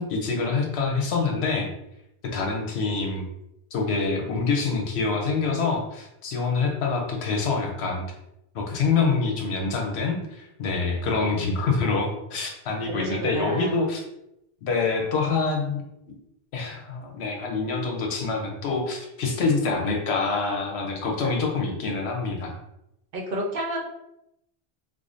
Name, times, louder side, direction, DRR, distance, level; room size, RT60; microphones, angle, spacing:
voice 1, 0.0-1.7 2.2-3.2 3.7-8.0 8.5-14.0 14.6-15.8 16.5-22.6, left 4 dB, 80° left, 1 dB, 1.0 m, -26 dB
voice 2, 12.9-13.8 21.2-21.4 23.1-23.8, right 1 dB, 60° right, 0 dB, 0.8 m, -30 dB
4.8 x 2.0 x 2.5 m, 0.84 s
omnidirectional pair, 1.1 m